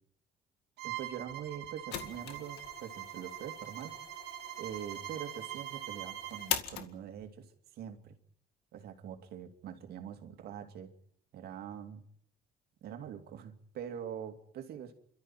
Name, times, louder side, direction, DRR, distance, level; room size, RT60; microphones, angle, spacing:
voice 1, 0.8-4.0 4.6-8.1 8.7-10.9 11.3-12.0 12.8-14.9, right 9 dB, 70° right, 6 dB, 2.7 m, -44 dB
Bowed string instrument, 0.8-6.6, right 14 dB, 85° right, 2.1 m, -43 dB
sound 1, 1.3-7.3, left 10 dB, 80° left, 2.0 m, -42 dB
28.0 x 13.0 x 9.1 m, 0.71 s
cardioid pair, 110°, 17 cm